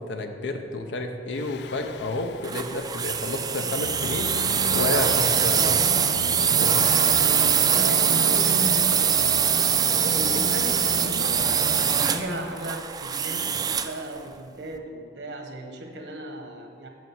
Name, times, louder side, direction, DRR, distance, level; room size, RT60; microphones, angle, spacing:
voice 1, 0.0-4.4 4.7-5.8 6.4-6.8, left 2 dB, 90° left, 5 dB, 0.8 m, -30 dB
Singing, 1.3-12.7, left 5 dB, 70° left, 0.4 m, -36 dB
sound 1, 2.4-14.0, right 7 dB, 20° right, 0.3 m, -23 dB
voice 2, 6.4-6.9 7.6-11.5 11.8-16.9, right 1 dB, 80° right, 3 dB, 1.2 m, -36 dB
6.5 x 6.3 x 7.1 m, 2.2 s
head